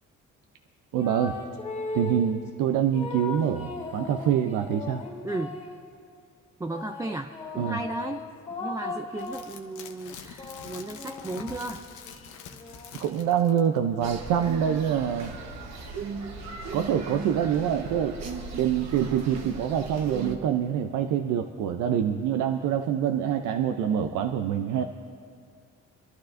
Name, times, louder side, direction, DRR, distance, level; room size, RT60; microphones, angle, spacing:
sound 1, 0.9-2.4 2.9-5.8 6.7-9.6 10.1-13.7, left 3 dB, 25° left, 2.6 m, -38 dB
voice 1, 0.9-1.4 1.9-5.0 7.6-7.8 13.0-15.3 16.7-18.2 18.6-24.8, right 9 dB, 90° right, 6 dB, 0.6 m, -25 dB
voice 2, 5.2-5.6 6.6-11.9, right 2 dB, 10° right, 5 dB, 0.3 m, -35 dB
sound 2, 9.2-13.8 14.1-14.2, left 6 dB, 85° left, 0.9 m, -45 dB
sound 3, 14.0-20.4, right 4 dB, 60° right, 1.2 m, -37 dB
26.0 x 11.5 x 2.6 m, 2.3 s
cardioid pair, 90°, 30 cm